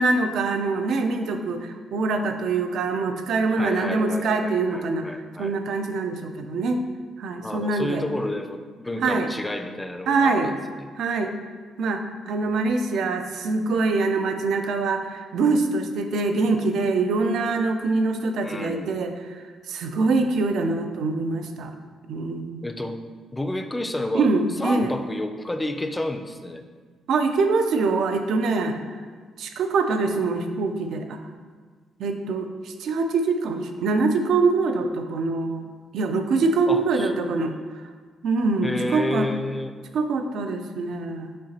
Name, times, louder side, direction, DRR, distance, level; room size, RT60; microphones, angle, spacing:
voice 1, 0.0-5.1 5.4-6.8 7.2-8.0 9.0-9.3 10.1-10.5 11.0-11.3 11.8-19.4 19.7-21.7 22.1-22.7 24.1-25.0 27.1-28.8 29.4-31.2 32.0-35.7 35.9-37.8 38.2-39.3 39.9-41.3, right 3 dB, 75° right, 6 dB, 0.4 m, -24 dB
voice 2, 3.6-5.5 7.4-10.9 18.4-18.9 22.6-23.0 23.3-24.3 24.6-26.6 36.7-37.1 38.6-39.8, left 1 dB, 10° left, 7 dB, 0.4 m, -30 dB
6.6 x 2.9 x 2.8 m, 1.6 s
cardioid pair, 90°, 0 cm